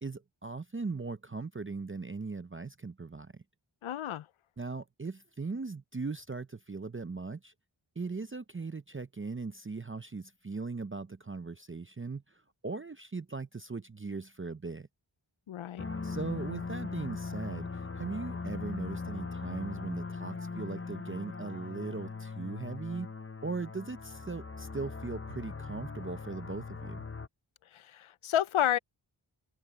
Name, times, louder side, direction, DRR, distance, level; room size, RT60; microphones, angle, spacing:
voice 1, 0.0-3.4 4.6-7.5 8.0-14.9 16.0-23.1 23.4-27.0, right 4 dB, 25° right, 0.6 m, -39 dB
voice 2, 3.8-4.3 15.5-15.9 27.7-28.8, left 11 dB, 75° left, 0.6 m, -30 dB
sound 1, 15.8-27.3, left 4 dB, 25° left, 0.8 m, -40 dB
wide cardioid pair, 45°, 49 cm